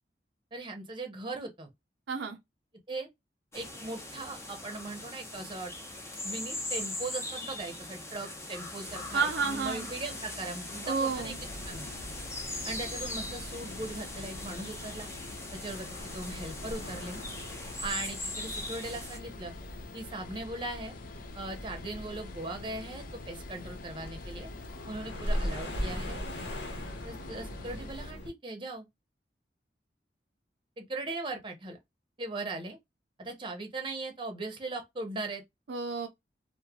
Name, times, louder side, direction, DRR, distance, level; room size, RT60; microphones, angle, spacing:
voice 1, 0.5-1.7 2.9-3.1 3.5-5.7 6.2-11.3 11.7-11.9 12.6-15.1 15.5-17.2 17.8-19.5 19.9-21.0 21.4-24.5 24.9-26.2 27.0-28.9 30.8-31.8 32.2-32.8 33.2-35.4, right 2 dB, 30° right, 0.8 m, -39 dB
voice 2, 2.1-2.4 9.1-9.9 10.9-11.4 35.7-36.1, right 5 dB, 75° right, 0.5 m, -30 dB
sound 1, 3.5-19.2, left 2 dB, 15° left, 0.7 m, -40 dB
sound 2, 8.9-28.1, left 5 dB, 50° left, 0.3 m, -49 dB
sound 3, 11.1-28.3, equal, 75° left, 0.9 m, -41 dB
3.1 x 2.2 x 2.3 m
head